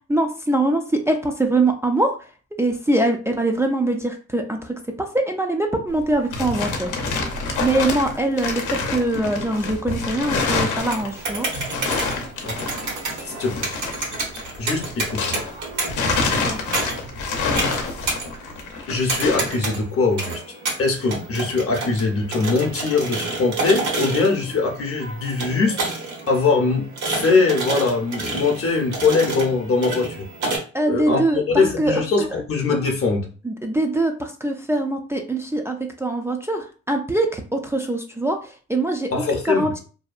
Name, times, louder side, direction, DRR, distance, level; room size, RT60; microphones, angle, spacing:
voice 1, 0.1-2.2 2.6-6.9 7.6-11.5 16.4-16.6 30.7-31.4 31.8-32.0 33.4-39.1 39.4-39.8, right 2 dB, 10° right, 2 dB, 0.3 m, -23 dB
sound 1, 5.9-15.5 15.8-19.6, left 3 dB, 85° left, 0.7 m, -27 dB
sound 2, 10.8-30.6, right 3 dB, 70° right, 1.0 m, -30 dB
voice 2, 13.2-13.7 14.6-15.5 18.9-20.4 20.8-25.8 26.3-30.3 30.9-33.3 39.1-39.7, left 4 dB, 50° left, 2 dB, 0.7 m, -22 dB
2.7 x 2.2 x 2.4 m, 0.37 s
cardioid pair, 90°, 30 cm